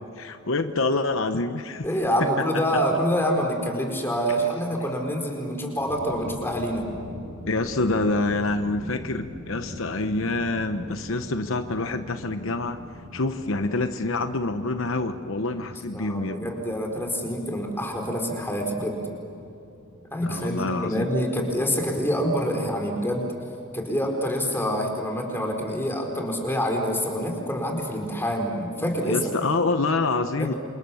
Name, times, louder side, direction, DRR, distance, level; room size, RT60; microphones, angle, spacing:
voice 1, 0.2-1.9 7.5-12.8 13.1-16.5 20.2-21.1 29.0-30.5, left 3 dB, 65° left, 8 dB, 1.0 m, -26 dB
voice 2, 1.8-6.9 15.9-19.0 20.1-23.3 23.7-29.2 30.4-30.5, equal, 10° left, 1 dB, 4.4 m, -26 dB
sound 1, 5.7-24.5, left 1 dB, 90° right, 7.4 m, -44 dB
28.5 x 27.0 x 7.1 m, 2.8 s
head